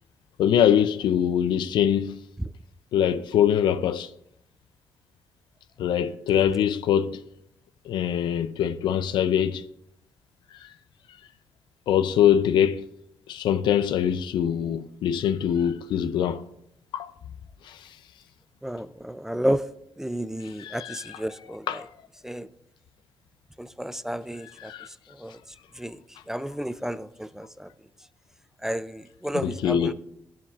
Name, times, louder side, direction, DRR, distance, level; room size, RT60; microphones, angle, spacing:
voice 1, 0.4-2.1 2.9-4.1 5.8-7.2 7.9-9.6 11.9-12.8 13.3-16.4 16.9-17.1 17.7-17.8 20.6-21.2 21.7-21.9 24.6-24.9 29.3-29.9, left 9 dB, 80° left, 0.5 m, -23 dB
voice 2, 18.6-19.6 20.0-21.8 22.2-22.5 23.6-24.7 25.1-25.4 25.8-26.0 26.3-27.7 28.6-29.9, equal, 5° right, 0.3 m, -31 dB
12.0 x 7.1 x 2.4 m
cardioid pair, 75°, 8 cm